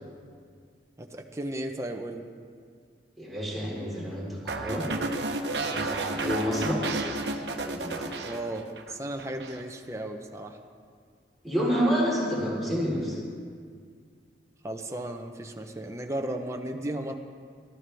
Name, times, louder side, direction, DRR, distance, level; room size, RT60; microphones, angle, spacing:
voice 1, 1.0-2.2 5.8-6.1 8.2-10.6 14.6-17.2, right 1 dB, 15° right, 3 dB, 0.7 m, -35 dB
voice 2, 3.2-4.9 5.7-7.1 7.6-8.2 11.4-13.2, equal, ahead, -7 dB, 3.9 m, -29 dB
sound 1, 4.5-8.9 9.2-9.6, right 2 dB, 70° right, 1.0 m, -32 dB
20.0 x 12.5 x 3.4 m, 2.1 s
head